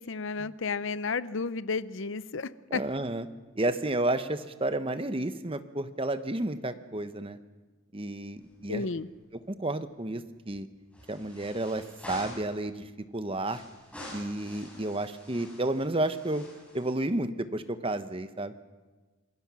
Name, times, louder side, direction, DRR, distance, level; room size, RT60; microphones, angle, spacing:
voice 1, 0.0-2.8 8.7-9.1, left 4 dB, 60° left, 16 dB, 0.7 m, -32 dB
voice 2, 2.7-3.3 3.5-7.4 7.9-8.9 9.3-10.7 11.1-12.8 13.1-13.6 14.1-16.4 16.7-18.5, right 1 dB, 25° right, 10 dB, 1.0 m, -31 dB
sound 1, 8.4-9.1 9.4-9.5 10.9-12.6 13.4-16.9, left 1 dB, 5° left, 7.4 m, -47 dB
27.0 x 20.5 x 6.2 m, 1.3 s
head